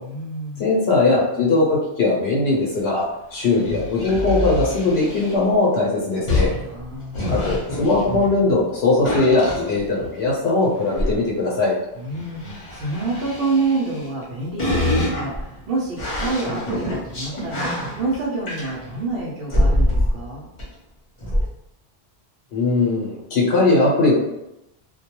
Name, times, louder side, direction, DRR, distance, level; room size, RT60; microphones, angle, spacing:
voice 1, 0.0-0.7 6.6-7.4 12.0-20.5, right 3 dB, 65° right, -5 dB, 0.8 m, -28 dB
voice 2, 0.6-3.1 3.3-6.5 7.3-11.7 22.5-24.1, left 3 dB, 75° left, -4 dB, 0.9 m, -19 dB
sound 1, 3.4-5.4 6.3-8.6 9.0-10.3 10.8-11.2 12.1-14.2 14.6-19.0 19.5-20.3 20.6-20.7 21.2-21.5, left 1 dB, 35° left, 0.7 m, -25 dB
2.2 x 2.2 x 2.9 m, 0.88 s
omnidirectional pair, 1.1 m